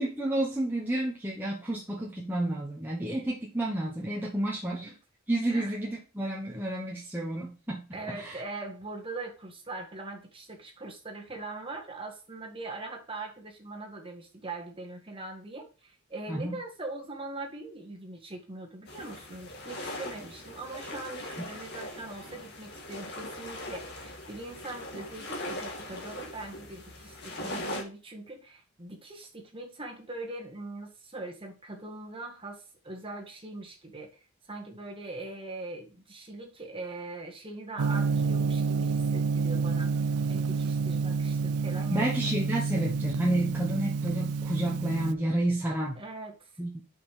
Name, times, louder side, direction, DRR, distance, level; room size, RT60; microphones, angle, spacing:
voice 1, 0.0-4.9 5.3-8.4 16.3-16.6 41.9-46.0 46.6-46.7, right 1 dB, 10° right, -4 dB, 1.2 m, -30 dB
voice 2, 7.9-42.1 46.0-46.5, right 2 dB, 25° right, 1 dB, 1.7 m, -41 dB
sound 1, 18.9-27.8, left 1 dB, 50° left, 1.9 m, -40 dB
Gong, 37.8-45.1, right 5 dB, 85° right, 0.4 m, -29 dB
5.9 x 5.5 x 5.0 m, 0.34 s
head